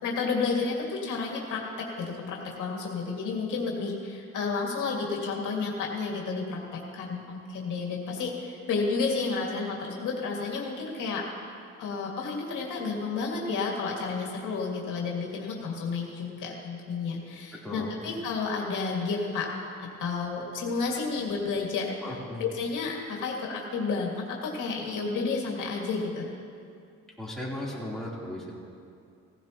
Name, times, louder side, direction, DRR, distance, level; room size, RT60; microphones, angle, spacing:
voice 1, 0.0-11.3 11.8-19.5 19.8-21.9 22.4-26.3, left 4 dB, 80° left, -2 dB, 2.2 m, -31 dB
voice 2, 22.0-22.4 27.2-28.5, left 1 dB, ahead, -7 dB, 3.4 m, -36 dB
17.0 x 15.5 x 3.0 m, 2.5 s
cardioid pair, 90°, 30 cm